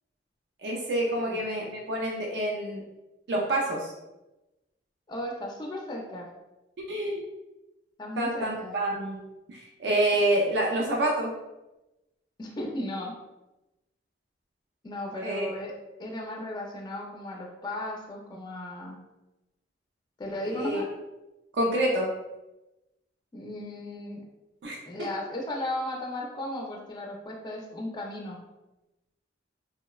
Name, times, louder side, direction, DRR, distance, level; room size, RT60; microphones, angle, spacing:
voice 1, 0.6-2.8 3.3-3.9 6.9-7.2 8.2-9.2 9.5-11.3 15.2-15.5 20.4-20.8 21.5-22.1 24.6-25.1, right 1 dB, 70° right, -1 dB, 0.4 m, -27 dB
voice 2, 5.1-6.3 8.0-8.7 12.4-13.1 14.8-15.7 16.0-19.0 20.2-20.9 23.3-24.2 24.9-28.4, left 1 dB, 25° left, -1 dB, 0.4 m, -35 dB
2.8 x 2.0 x 2.3 m, 1.0 s
head